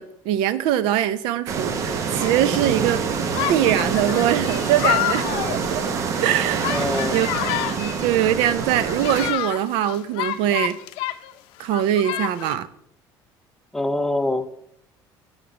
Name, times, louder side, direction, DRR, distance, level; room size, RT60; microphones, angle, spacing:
voice 1, 0.0-3.0 3.5-5.8 6.2-7.3 7.8-10.8 11.6-12.7, right 11 dB, 75° right, 15 dB, 0.5 m, -22 dB
sound 1, 1.5-9.3, right 5 dB, 35° right, 0.6 m, -26 dB
sound 2, 2.2-2.6 3.3-8.2 8.7-11.3 11.6-12.5, left 14 dB, 80° left, 0.5 m, -29 dB
voice 2, 6.7-7.2 13.7-14.5, left 1 dB, 5° left, 9 dB, 0.4 m, -24 dB
8.7 x 5.3 x 4.9 m, 0.74 s
cardioid pair, 175°, 9 cm